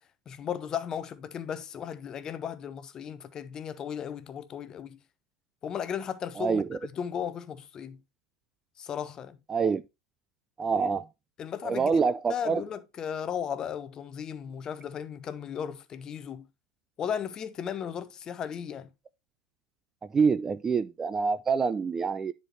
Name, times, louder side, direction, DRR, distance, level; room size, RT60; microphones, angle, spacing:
voice 1, 0.3-5.0 5.6-8.0 8.8-9.4 10.7-10.9 11.4-11.9 12.3-16.5 17.0-18.9, left 8 dB, 30° left, 0.8 m, -35 dB
voice 2, 9.5-9.8 10.6-11.0 11.6-12.6 20.1-22.3, right 5 dB, 20° right, 0.4 m, -26 dB
10.0 x 4.4 x 3.2 m
figure-of-eight pair, 90°, 2 cm